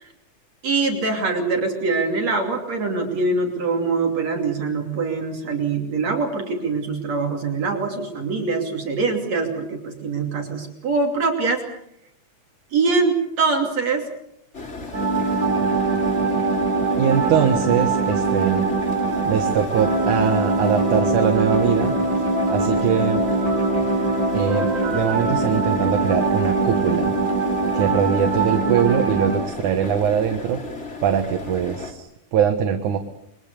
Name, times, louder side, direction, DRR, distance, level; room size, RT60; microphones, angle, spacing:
voice 1, 0.6-11.6 12.7-14.1, right 4 dB, 60° right, 2 dB, 4.0 m, -23 dB
sound 1, 14.5-31.9, left 3 dB, 20° left, 3.1 m, -34 dB
sound 2, 14.9-29.4, right 3 dB, 25° right, 5.3 m, -22 dB
voice 2, 17.0-18.7 19.2-22.0 22.5-23.3 24.3-27.1 27.7-30.6 31.0-33.0, right 8 dB, 80° right, 5 dB, 2.9 m, -22 dB
28.5 x 23.0 x 6.9 m, 0.75 s
omnidirectional pair, 3.5 m